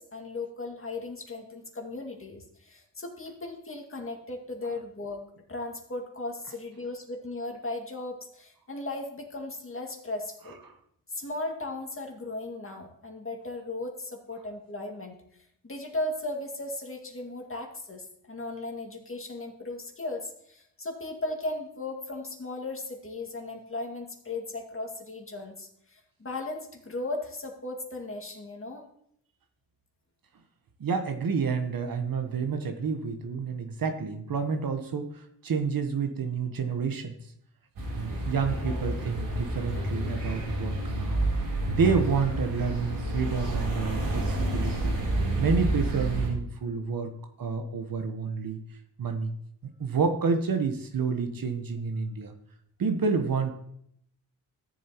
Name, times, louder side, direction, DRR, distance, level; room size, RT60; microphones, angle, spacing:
voice 1, 0.0-5.2 5.5-10.6 11.1-15.2 15.6-28.8, left 2 dB, 30° left, 1 dB, 2.3 m, -36 dB
voice 2, 30.8-37.1 37.9-41.3 41.7-45.0 45.4-47.1 47.4-48.6 49.0-49.3 49.8-52.3 52.8-53.5, right 5 dB, 55° right, 6 dB, 1.3 m, -29 dB
sound 1, 37.8-46.3, right 1 dB, 80° right, 3.8 m, -29 dB
13.5 x 7.3 x 3.0 m, 0.71 s
supercardioid pair, 55°, 41 cm